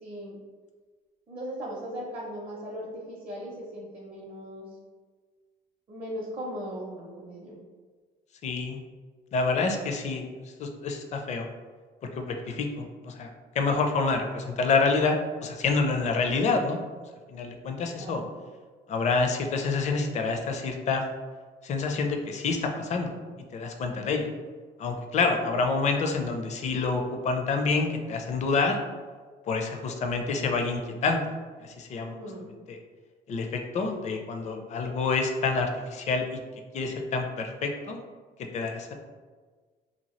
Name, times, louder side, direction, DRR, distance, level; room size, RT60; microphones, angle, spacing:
voice 1, 0.0-0.4 1.3-4.7 5.9-7.6 18.0-18.3 23.9-24.1 32.1-32.5, equal, 35° right, -4 dB, 0.6 m, -38 dB
voice 2, 8.4-8.8 9.3-10.3 10.6-11.5 12.2-13.3 13.6-16.8 17.3-18.2 18.9-21.0 21.6-23.1 23.5-24.3 24.8-28.8 29.5-31.2 31.6-32.1 32.7-32.8 33.3-36.4 36.7-38.0 38.5-38.9, left 4 dB, 45° left, 4 dB, 0.4 m, -27 dB
2.8 x 2.3 x 3.0 m, 1.5 s
cardioid pair, 110°, 17 cm